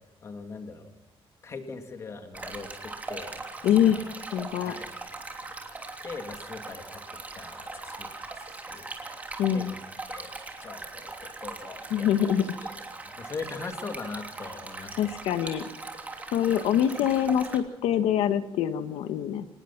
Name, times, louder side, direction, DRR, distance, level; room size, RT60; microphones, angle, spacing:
voice 1, 0.2-0.9 1.4-3.4 3.6-4.2 4.6-5.0 6.0-8.1 8.4-8.9 9.5-10.3 10.6-15.3 16.5-16.7, left 4 dB, 30° left, 6 dB, 2.5 m, -41 dB
Stream, 2.3-17.6, right 3 dB, 15° right, 3.0 m, -40 dB
voice 2, 3.6-4.0 4.3-4.7 9.4-9.7 11.9-12.5 15.0-15.6 16.3-19.5, left 10 dB, 80° left, 9 dB, 1.3 m, -24 dB
25.5 x 19.5 x 5.9 m, 0.97 s
cardioid pair, 180°, 10 cm